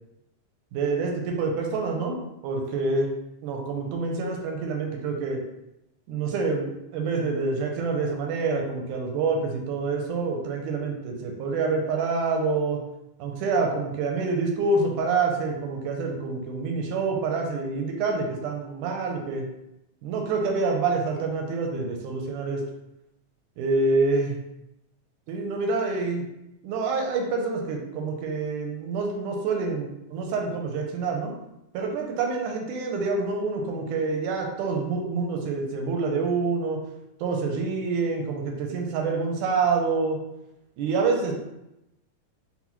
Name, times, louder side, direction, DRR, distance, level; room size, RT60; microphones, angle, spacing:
voice 1, 0.7-3.1 3.4-5.4 6.1-12.8 13.2-19.4 20.0-22.6 23.6-24.4 25.3-26.3 26.6-31.3 31.7-36.8 37.2-40.2 40.8-41.3, right 4 dB, 80° right, 2 dB, 2.0 m, -27 dB
5.5 x 2.2 x 2.9 m, 0.88 s
omnidirectional pair, 3.6 m